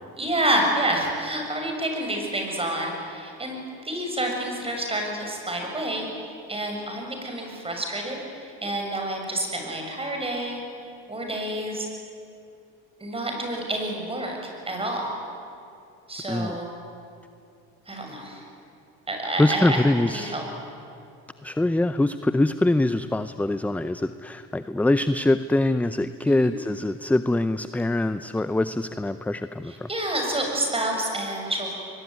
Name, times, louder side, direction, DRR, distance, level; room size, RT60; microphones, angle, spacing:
voice 1, 0.2-10.6 11.1-11.9 13.0-14.4 14.7-15.1 16.1-16.7 17.9-18.4 19.1-19.8 20.1-20.4 26.4-26.6 29.7-31.7, right 1 dB, 15° right, 2 dB, 7.5 m, -28 dB
voice 2, 19.4-20.4 21.4-29.9, left 2 dB, 5° left, 12 dB, 0.6 m, -23 dB
24.0 x 22.0 x 9.4 m, 2.5 s
supercardioid pair, 95°, 33 cm